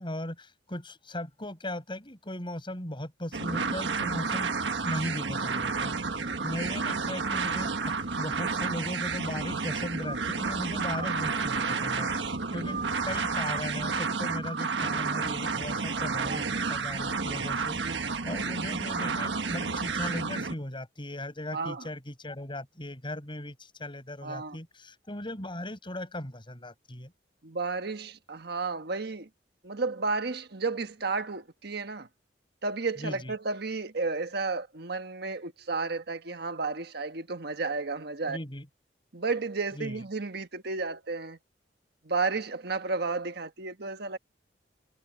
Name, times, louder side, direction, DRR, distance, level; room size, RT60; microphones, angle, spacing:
voice 1, 0.0-4.5 4.8-16.4 16.7-27.1 33.0-33.3 38.3-38.6 39.8-40.0, left 1 dB, 30° left, 7.6 m, -38 dB
sound 1, 3.3-20.5, right 4 dB, 90° right, 1.5 m, -31 dB
voice 2, 16.2-16.5 17.8-18.2 21.5-21.9 24.2-24.6 27.4-29.3 29.6-32.1 32.6-38.4 39.1-41.4 42.0-44.2, right 3 dB, 65° right, 1.4 m, -32 dB
head